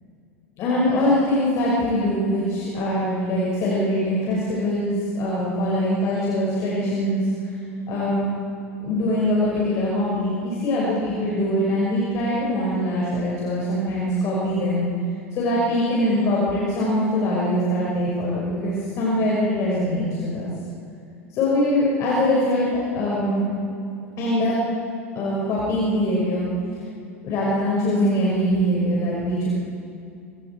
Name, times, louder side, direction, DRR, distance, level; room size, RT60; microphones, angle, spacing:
voice 1, 0.6-7.2 7.9-8.3 8.8-14.9 15.3-20.5 21.3-23.5 24.2-24.6 25.2-26.5 27.2-29.5, left 1 dB, 40° left, -6 dB, 5.7 m, -23 dB
26.5 x 24.5 x 4.7 m, 2.6 s
figure-of-eight pair, 85°, 7 cm